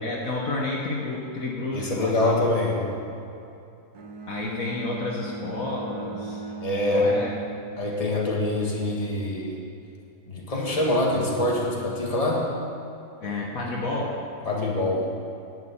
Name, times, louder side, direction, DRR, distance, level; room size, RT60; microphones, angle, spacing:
voice 1, 0.0-2.4 4.3-6.4 6.9-7.3 10.5-11.0 13.2-14.2, left 2 dB, 60° left, -2 dB, 1.6 m, -31 dB
voice 2, 1.7-2.9 6.6-7.1 7.8-9.6 10.3-12.4 14.5-15.0, left 2 dB, 20° left, -3 dB, 1.9 m, -25 dB
Bowed string instrument, 3.9-8.2, right 3 dB, 70° right, 1.5 m, -38 dB
11.0 x 6.7 x 8.5 m, 2.7 s
omnidirectional pair, 1.7 m